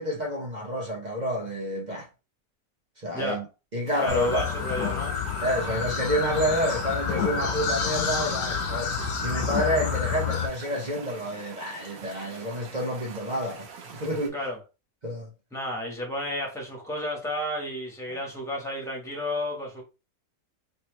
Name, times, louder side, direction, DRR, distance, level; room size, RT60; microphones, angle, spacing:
voice 1, 0.0-2.1 3.0-3.4 3.7-4.5 5.4-8.9 9.2-14.4 15.0-15.3 18.1-18.2, equal, 40° right, 0.7 m, -29 dB
sound 1, 3.9-14.3, right 6 dB, 85° right, 1.4 m, -45 dB
voice 2, 4.0-5.2 14.3-14.6 15.5-19.8, left 1 dB, ahead, 1.3 m, -32 dB
sound 2, 4.1-10.5, left 6 dB, 80° left, 1.3 m, -29 dB
3.4 x 3.0 x 3.1 m
omnidirectional pair, 1.6 m